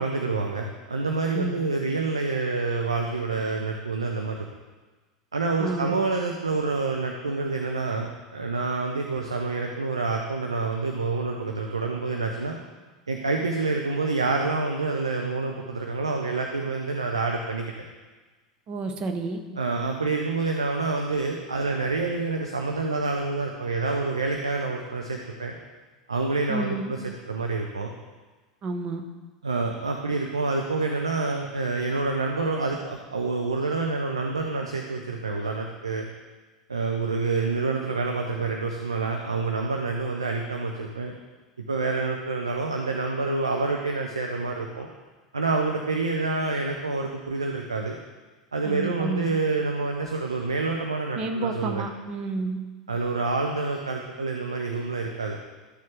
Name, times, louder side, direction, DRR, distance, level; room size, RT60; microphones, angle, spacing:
voice 1, 0.0-4.5 5.3-12.6 13.1-17.7 19.6-25.5 26.1-27.0 27.3-27.9 29.4-36.1 36.7-41.1 41.6-44.9 45.3-48.0 48.5-51.8 52.9-55.4, right 3 dB, 80° right, 2 dB, 0.7 m, -27 dB
voice 2, 5.6-5.9 18.7-19.4 26.5-26.9 28.6-29.0 48.6-49.3 51.2-52.6, right 3 dB, 35° right, 5 dB, 1.0 m, -30 dB
13.0 x 6.7 x 3.4 m, 1.3 s
figure-of-eight pair, 80°, 3 cm